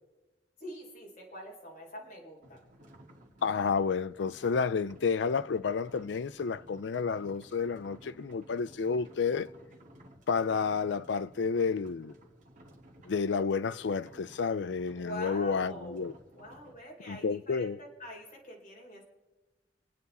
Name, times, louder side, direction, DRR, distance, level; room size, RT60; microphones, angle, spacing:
voice 1, 0.6-2.6 14.9-16.1 16.4-19.0, equal, 45° left, 4.0 m, -45 dB
sound 1, 2.4-16.7, right 1 dB, 45° right, 2.1 m, -56 dB
voice 2, 3.4-9.5 10.3-12.1 13.0-16.1 17.1-17.8, left 5 dB, 85° left, 0.5 m, -30 dB
27.0 x 9.4 x 4.2 m
head